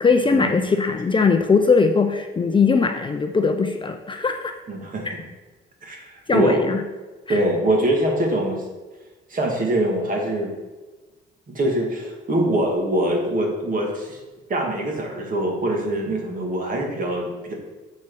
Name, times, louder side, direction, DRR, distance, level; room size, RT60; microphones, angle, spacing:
voice 1, 0.0-4.6 5.0-5.1 6.3-6.8 7.3-7.4, left 4 dB, 25° left, 6 dB, 0.5 m, -20 dB
voice 2, 4.7-5.2 5.8-6.6 7.3-8.6 9.3-10.5 11.5-14.2 14.5-17.5, right 1 dB, 45° right, 1 dB, 1.9 m, -23 dB
7.1 x 4.6 x 4.6 m, 1.2 s
cardioid pair, 90°, 20 cm